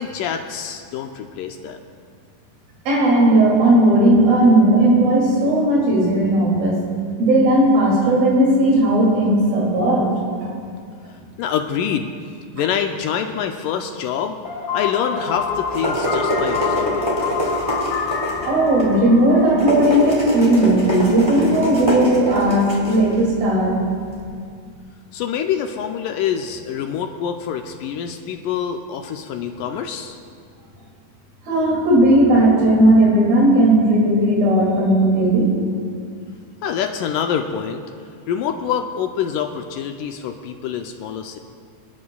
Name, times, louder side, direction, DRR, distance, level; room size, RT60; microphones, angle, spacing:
voice 1, 0.0-1.8 11.4-12.1 12.5-14.4 14.7-17.1 25.1-30.2 36.6-37.8 38.3-41.4, left 8 dB, 80° left, 5 dB, 2.0 m, -26 dB
voice 2, 2.9-6.8 7.2-10.1 10.4-10.5 18.4-23.8 31.5-35.5, right 1 dB, 80° right, -3 dB, 4.4 m, -16 dB
sound 1, 14.5-20.3, left 5 dB, 65° left, 2.6 m, -27 dB
sound 2, 15.4-24.2, equal, 10° right, 2.4 m, -26 dB
26.5 x 11.0 x 2.3 m, 2.2 s
omnidirectional pair, 4.1 m